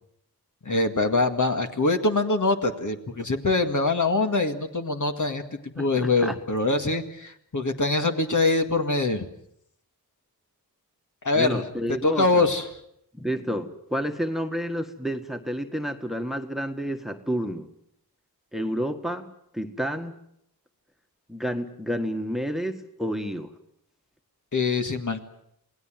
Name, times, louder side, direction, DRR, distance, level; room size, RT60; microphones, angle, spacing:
voice 1, 0.7-9.3 11.2-11.6 12.0-12.6 24.5-25.2, left 3 dB, 55° left, 5 dB, 2.1 m, -24 dB
voice 2, 5.8-6.4 11.3-12.5 13.1-17.7 18.5-20.2 21.3-23.5, equal, ahead, 6 dB, 1.7 m, -30 dB
28.0 x 18.5 x 7.6 m, 0.74 s
wide cardioid pair, 70°, 37 cm